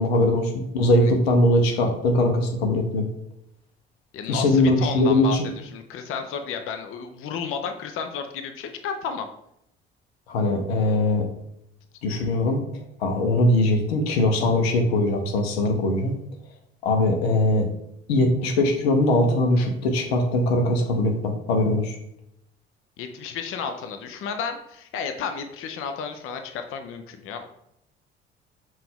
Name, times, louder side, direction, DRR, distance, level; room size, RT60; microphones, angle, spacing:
voice 1, 0.0-3.1 4.3-5.5 10.3-11.3 12.0-12.6 13.0-16.2 16.8-17.7 18.1-22.0, left 1 dB, 80° left, 4 dB, 0.7 m, -21 dB
voice 2, 4.1-5.3 5.6-9.3 23.0-27.5, left 6 dB, 45° left, 7 dB, 0.5 m, -32 dB
5.6 x 2.5 x 3.6 m, 0.79 s
figure-of-eight pair, 55°, 31 cm